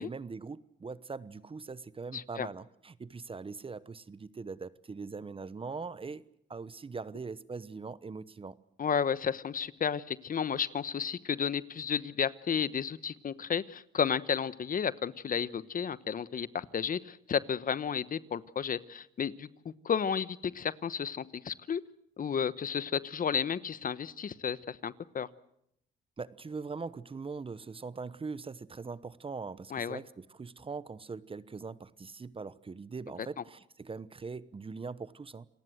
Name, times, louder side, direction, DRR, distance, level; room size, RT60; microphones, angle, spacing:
voice 1, 0.0-6.2 6.5-8.6 26.2-35.5, right 4 dB, 25° right, 1.0 m, -41 dB
voice 2, 2.1-2.5 8.8-21.8 22.2-25.3 29.7-30.0, left 7 dB, 45° left, 1.1 m, -32 dB
28.5 x 19.0 x 7.8 m
cardioid pair, 90°, 20 cm